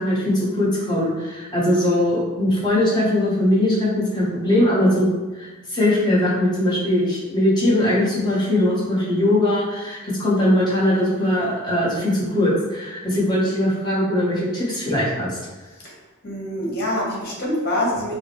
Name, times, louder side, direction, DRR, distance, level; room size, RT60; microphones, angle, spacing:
voice 1, 0.0-5.1 5.4-15.4, left 1 dB, 20° left, -6 dB, 1.1 m, -20 dB
voice 2, 16.2-18.1, left 1 dB, 50° left, -4 dB, 1.3 m, -25 dB
5.5 x 2.1 x 3.0 m, 1.2 s
head